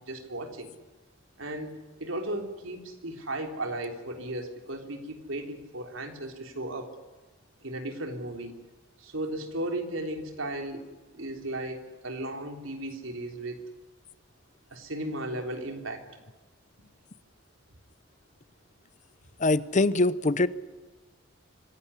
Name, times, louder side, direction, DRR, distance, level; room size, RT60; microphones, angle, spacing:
voice 1, 0.1-0.7 1.4-6.9 7.6-8.5 9.0-10.9 11.1-13.6 14.7-16.1, right 1 dB, 85° right, 3.5 m, -35 dB
voice 2, 19.4-20.5, left 2 dB, 40° left, 0.8 m, -23 dB
26.0 x 17.0 x 9.9 m
head